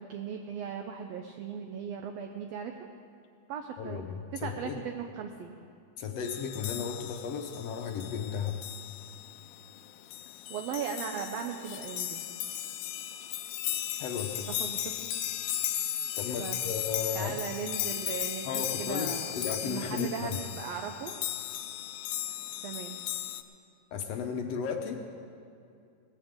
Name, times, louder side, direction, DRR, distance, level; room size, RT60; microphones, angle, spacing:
voice 1, 0.0-2.9 3.5-4.0 4.3-5.5 10.5-12.2 14.4-15.1 16.4-16.6 17.1-19.3 19.6-21.1 22.6-23.0, right 7 dB, 75° right, 4 dB, 1.6 m, -38 dB
voice 2, 3.8-4.8 6.0-8.6 14.0-14.5 16.2-17.4 18.5-20.4 23.9-25.0, left 6 dB, 70° left, 4 dB, 1.7 m, -35 dB
sound 1, 6.2-23.4, left 12 dB, 90° left, 2.1 m, -36 dB
19.0 x 15.0 x 3.7 m, 2.4 s
omnidirectional pair, 3.6 m